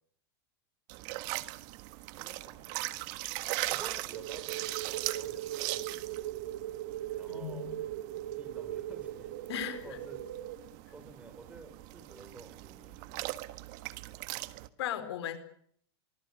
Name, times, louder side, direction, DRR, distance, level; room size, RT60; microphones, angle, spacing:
sound 1, 0.9-14.7, right 19 dB, 50° right, 1.5 m, -40 dB
voice 1, 2.0-3.0 3.7-6.2 7.2-7.7 8.4-9.3 9.8-10.2 10.9-13.3, right 2 dB, 10° right, 9 dB, 6.1 m, -51 dB
sound 2, 4.1-10.6, right 12 dB, 75° right, 4.8 m, -39 dB
voice 2, 7.3-7.8 9.5-10.0 14.8-15.4, left 11 dB, 75° left, 10 dB, 4.4 m, -37 dB
25.0 x 22.5 x 6.6 m, 0.64 s
supercardioid pair, 155°, 14 cm